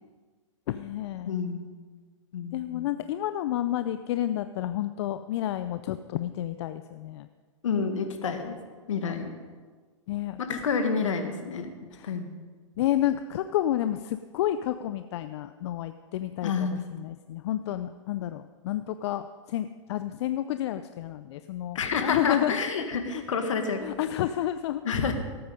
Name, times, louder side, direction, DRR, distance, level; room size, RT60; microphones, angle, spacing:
voice 1, 0.7-1.3 2.5-7.3 10.1-10.6 11.9-12.1 12.8-22.6 23.1-23.2 23.8-25.1, left 12 dB, 60° left, 11 dB, 0.5 m, -30 dB
voice 2, 1.2-1.6 2.3-2.9 7.6-8.5 8.9-9.3 10.4-12.3 16.4-16.9 21.7-23.8 24.8-25.1, left 5 dB, 75° left, 7 dB, 1.8 m, -29 dB
18.0 x 8.7 x 5.3 m, 1.5 s
hypercardioid pair, 110°, 16 cm